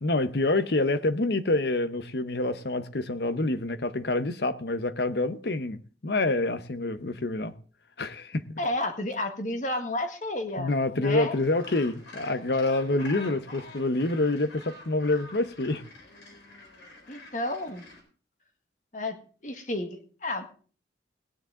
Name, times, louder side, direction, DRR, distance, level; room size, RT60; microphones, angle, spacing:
voice 1, 0.0-7.5 8.0-8.6 10.6-15.8, left 2 dB, 65° left, 12 dB, 0.9 m, -27 dB
voice 2, 8.6-11.4 17.1-17.9 18.9-20.5, left 1 dB, 45° left, 6 dB, 1.7 m, -32 dB
Gull seagull, 11.3-18.0, left 2 dB, 85° left, 4.1 m, -47 dB
18.0 x 9.9 x 3.8 m, 0.41 s
head